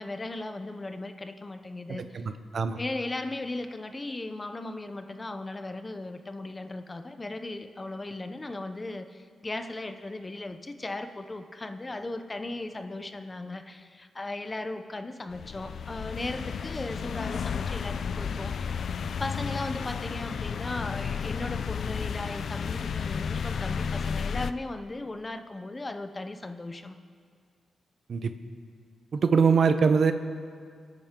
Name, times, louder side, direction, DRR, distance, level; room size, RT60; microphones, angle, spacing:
voice 1, 0.0-2.3 2.8-18.5 19.2-26.9, left 2 dB, 25° left, 8 dB, 0.7 m, -37 dB
voice 2, 2.1-2.8 28.1-28.3 29.1-30.1, right 5 dB, 55° right, 9 dB, 0.7 m, -23 dB
sound 1, 15.3-24.5, left 6 dB, 65° left, 0.4 m, -32 dB
26.5 x 9.0 x 3.7 m, 2.1 s
cardioid pair, 105°, 0 cm